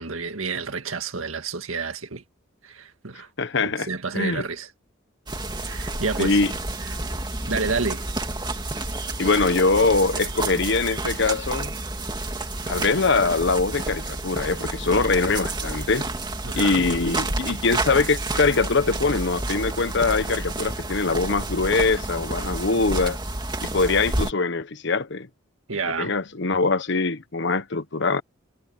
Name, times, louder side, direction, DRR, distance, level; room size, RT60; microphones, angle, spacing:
voice 1, 0.0-2.2 2.6-3.3 3.6-4.7 5.7-6.4 7.5-8.1 16.4-16.9 25.7-26.1, right 4 dB, 80° right, 1.9 m, -29 dB
voice 2, 3.4-3.9 4.1-4.5 6.2-6.5 9.2-11.7 12.7-16.1 16.5-23.2 23.6-25.3 26.0-28.2, left 3 dB, 60° left, 1.0 m, -23 dB
sound 1, 5.3-24.3, right 2 dB, 20° right, 2.6 m, -30 dB
head